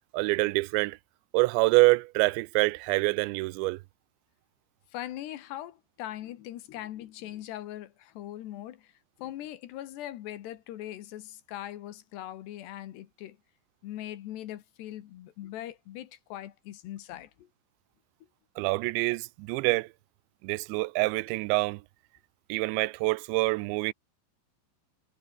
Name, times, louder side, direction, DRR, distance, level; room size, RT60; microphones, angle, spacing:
voice 1, 0.1-1.0 1.3-3.8 18.6-19.9 20.4-21.8 22.5-23.9, right 23 dB, 90° right, 2.9 m, -26 dB
voice 2, 4.9-8.9 9.2-13.4 13.8-17.5, left 13 dB, 75° left, 3.5 m, -41 dB
omnidirectional pair, 5.1 m